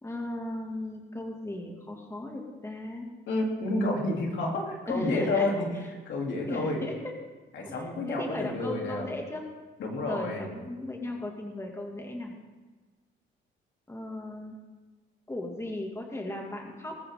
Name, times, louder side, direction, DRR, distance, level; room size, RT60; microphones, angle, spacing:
voice 1, 0.0-3.1 4.9-5.7 6.3-7.1 7.6-9.4 10.0-12.3 13.9-14.6 15.3-17.0, left 1 dB, 15° left, 1 dB, 2.4 m, -36 dB
voice 2, 3.3-6.8 7.5-9.1 9.8-10.5, left 2 dB, 70° left, -1 dB, 3.4 m, -30 dB
20.5 x 14.5 x 3.9 m, 1.3 s
cardioid pair, 90°, 20 cm